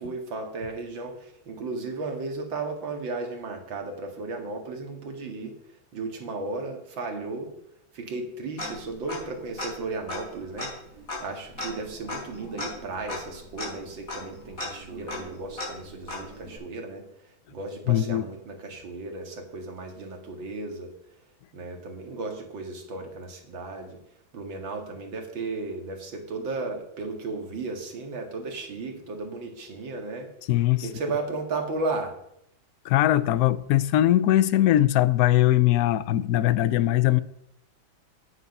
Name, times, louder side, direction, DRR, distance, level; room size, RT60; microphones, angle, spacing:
voice 1, 0.0-5.5 5.9-7.5 7.9-10.7 11.2-17.0 17.5-20.9 21.5-24.0 24.3-30.3 30.8-32.1, right 3 dB, 80° right, 2.7 m, -34 dB
Tick-tock, 8.6-9.3 9.6-9.7 10.1-16.6, left 2 dB, 45° left, 5.6 m, -37 dB
voice 2, 17.9-18.2 30.5-30.9 32.8-37.2, left 14 dB, 75° left, 0.8 m, -21 dB
9.8 x 9.8 x 5.4 m
omnidirectional pair, 2.1 m